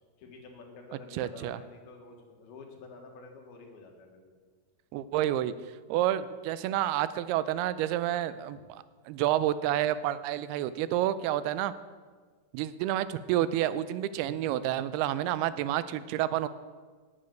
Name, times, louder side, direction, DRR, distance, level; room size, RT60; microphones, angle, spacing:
voice 1, 0.2-4.4 8.5-8.7, left 3 dB, 75° left, 2 dB, 3.4 m, -49 dB
voice 2, 1.1-1.6 4.9-5.5 5.9-11.7 12.5-16.5, right 12 dB, 85° right, 15 dB, 2.6 m, -29 dB
9.8 x 7.9 x 9.3 m, 1.5 s
omnidirectional pair, 4.5 m